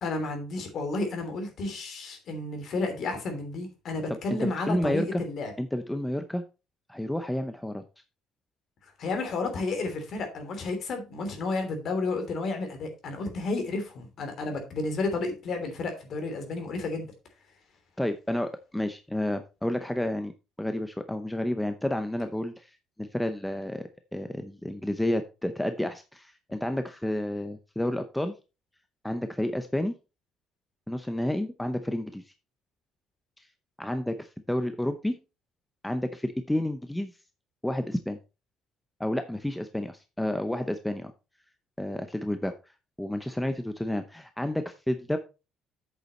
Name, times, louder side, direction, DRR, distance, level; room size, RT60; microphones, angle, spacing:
voice 1, 0.0-5.5 9.0-17.1, left 3 dB, 45° left, 5 dB, 3.1 m, -32 dB
voice 2, 4.4-5.2 5.6-6.4 6.9-7.8 18.0-20.3 20.6-23.8 24.1-28.4 29.0-30.0 30.9-32.2 33.4-33.5 33.8-35.2 35.8-37.1 37.6-38.2 39.0-41.1 41.8-42.5 43.0-45.2, left 1 dB, 5° left, 8 dB, 0.6 m, -30 dB
8.2 x 6.7 x 4.3 m, 0.30 s
cardioid pair, 155°, 0 cm